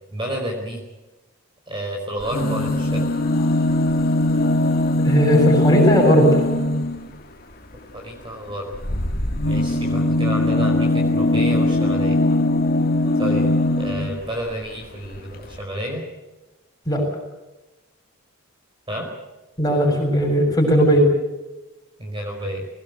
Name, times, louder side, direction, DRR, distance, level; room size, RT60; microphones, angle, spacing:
voice 1, 0.1-0.8 1.7-3.0 7.9-8.7 9.4-12.2 13.2-13.5 13.8-16.0 18.9-19.1 22.0-22.7, equal, 25° right, 0 dB, 4.7 m, -30 dB
sound 1, 2.2-7.1 8.7-14.2 15.1-15.2 15.4-15.5, left 1 dB, 45° left, 2.1 m, -20 dB
voice 2, 5.0-6.5 16.9-17.0 19.6-21.1, equal, 15° left, 0 dB, 7.3 m, -17 dB
22.0 x 19.5 x 8.1 m, 1.1 s
head